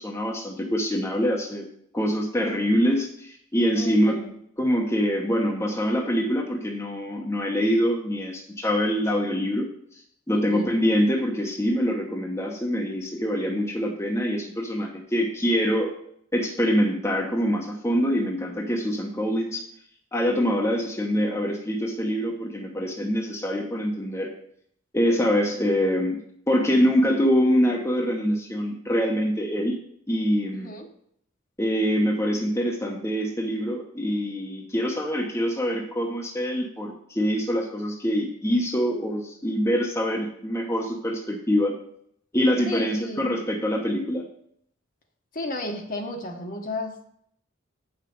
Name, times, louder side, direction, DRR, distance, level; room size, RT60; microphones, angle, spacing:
voice 1, 0.0-1.7 1.9-4.2 4.6-9.7 10.3-15.9 16.3-19.6 20.1-24.3 24.9-29.8 30.1-30.7 31.6-41.7 42.3-44.2, equal, 15° left, 0 dB, 0.9 m, -24 dB
voice 2, 3.7-4.3 10.3-10.7 30.5-30.9 42.7-43.2 45.3-47.1, left 2 dB, 45° left, 3 dB, 1.2 m, -33 dB
8.0 x 5.8 x 5.2 m, 0.68 s
head